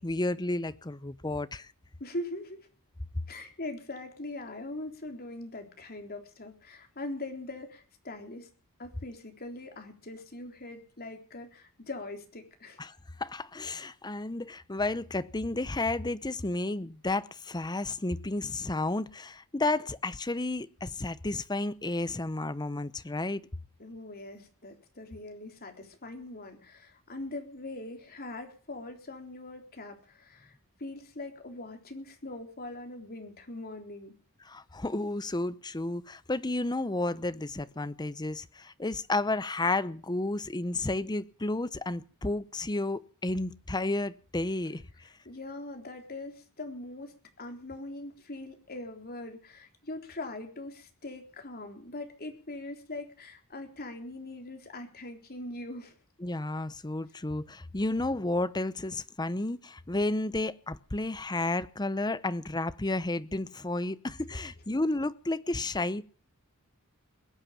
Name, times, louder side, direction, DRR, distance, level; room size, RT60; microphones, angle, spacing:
voice 1, 0.0-1.7 12.8-23.4 34.5-44.8 56.2-66.0, left 2 dB, 20° left, 0.8 m, -32 dB
voice 2, 2.0-2.6 3.3-8.5 8.8-12.8 23.8-30.5 30.8-34.1 45.3-55.9, left 2 dB, 45° left, 3.7 m, -42 dB
21.5 x 9.0 x 7.1 m
head